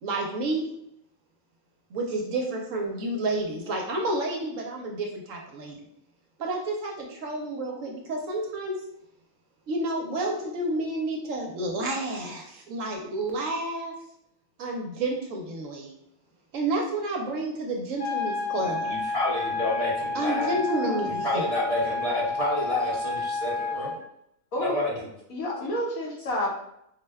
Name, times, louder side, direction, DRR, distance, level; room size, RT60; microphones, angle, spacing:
voice 1, 0.0-0.7 1.9-5.8 6.4-8.8 9.7-13.9 14.6-15.9 16.5-18.9 20.1-21.5, right 2 dB, 65° right, 1 dB, 0.9 m, -30 dB
sound 1, 18.0-24.0, left 3 dB, 90° left, 2.0 m, -30 dB
voice 2, 18.6-20.5 21.1-24.0 24.6-25.1, left 2 dB, 30° left, -6 dB, 0.7 m, -29 dB
voice 3, 20.6-21.1 24.5-24.8 25.3-26.5, left 1 dB, 65° left, -1 dB, 1.2 m, -30 dB
4.1 x 2.2 x 3.3 m, 0.75 s
omnidirectional pair, 1.6 m